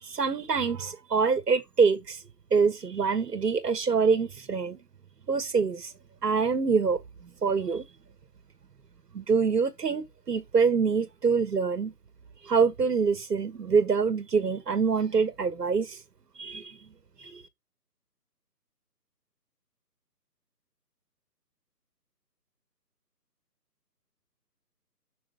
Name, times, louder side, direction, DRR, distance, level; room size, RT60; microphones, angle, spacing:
voice 1, 0.0-2.2 2.5-4.8 5.3-5.9 6.2-7.0 7.4-7.8 9.1-11.9 12.4-16.0 16.4-16.7 17.2-17.4, right 5 dB, 70° right, 1.5 m, -25 dB
6.5 x 6.3 x 3.5 m
figure-of-eight pair, 160°, 50 cm